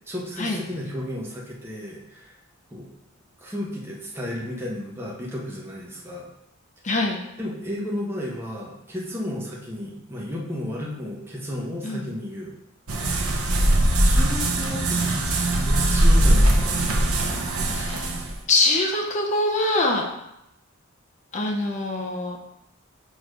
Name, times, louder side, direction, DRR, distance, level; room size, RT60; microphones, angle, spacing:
voice 1, 0.1-2.3 2.7-2.9 3.4-6.3 7.4-12.5 14.0-15.0 15.3-16.7, left 1 dB, 10° right, -4 dB, 1.1 m, -33 dB
voice 2, 6.8-7.2 11.8-12.1 17.7-18.1 18.5-20.0 21.3-22.4, left 2 dB, 35° left, 1 dB, 0.7 m, -23 dB
sound 1, 12.9-18.4, right 1 dB, 70° right, 0.8 m, -21 dB
6.4 x 3.0 x 5.1 m, 0.84 s
head